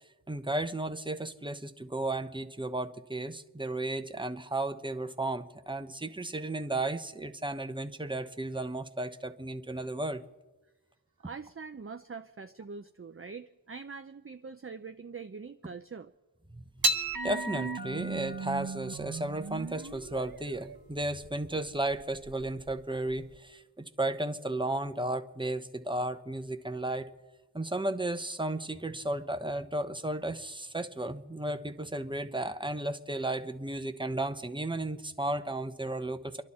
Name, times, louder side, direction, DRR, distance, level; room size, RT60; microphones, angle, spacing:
voice 1, 0.3-10.2 16.5-16.6 17.2-27.1 27.5-36.4, right 2 dB, 10° right, 8 dB, 0.9 m, -34 dB
voice 2, 11.2-16.1, right 5 dB, 30° right, 8 dB, 0.5 m, -43 dB
sound 1, 16.8-23.4, right 2 dB, 50° right, 0.9 m, -35 dB
29.0 x 11.5 x 4.3 m, 1.2 s
wide cardioid pair, 45°, 45 cm